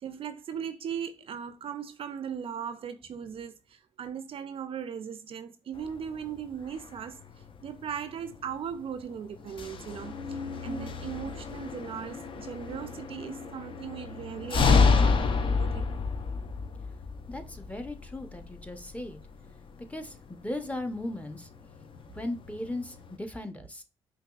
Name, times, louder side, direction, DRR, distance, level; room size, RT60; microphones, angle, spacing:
voice 1, 0.0-7.2 7.6-16.0, right 8 dB, 50° right, 0.4 m, -38 dB
sound 1, 5.8-23.2, left 4 dB, 45° left, 0.5 m, -31 dB
voice 2, 10.6-10.9 17.3-19.2 19.9-21.5 22.1-23.8, left 1 dB, 10° left, 0.7 m, -37 dB
5.3 x 2.3 x 2.3 m
hypercardioid pair, 50°, 12 cm